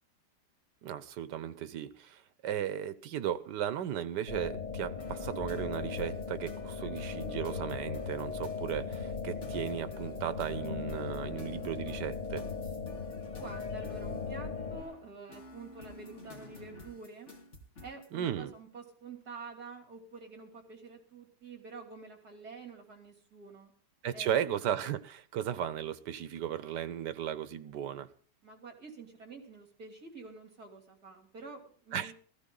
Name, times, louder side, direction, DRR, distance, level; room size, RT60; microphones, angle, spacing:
voice 1, 0.8-12.4 18.1-18.5 24.0-28.1 31.9-32.1, right 10 dB, 75° right, 1.5 m, -36 dB
sound 1, 4.3-14.8, left 5 dB, 25° left, 1.3 m, -38 dB
sound 2, 5.0-18.1, left 2 dB, 40° left, 2.4 m, -52 dB
voice 2, 13.4-17.3 17.8-23.7 24.1-24.5 28.4-32.1, right 4 dB, 60° right, 3.4 m, -48 dB
16.0 x 14.5 x 3.8 m
omnidirectional pair, 1.9 m